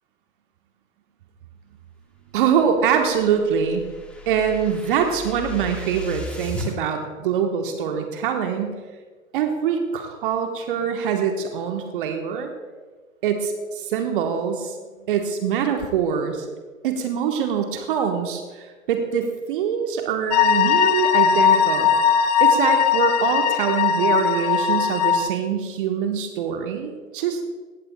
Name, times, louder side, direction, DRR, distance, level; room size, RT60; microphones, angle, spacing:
voice 1, 2.3-3.8 4.3-8.8 9.3-12.5 13.2-14.8 15.1-16.5 16.8-21.9 22.4-27.4, right 7 dB, 40° right, 5 dB, 1.2 m, -24 dB
sound 1, 2.7-6.7, left 2 dB, 5° left, 1.5 m, -36 dB
sound 2, 20.3-25.3, left 8 dB, 30° left, 0.5 m, -19 dB
17.0 x 14.5 x 2.2 m, 1.4 s
figure-of-eight pair, 115°, 41 cm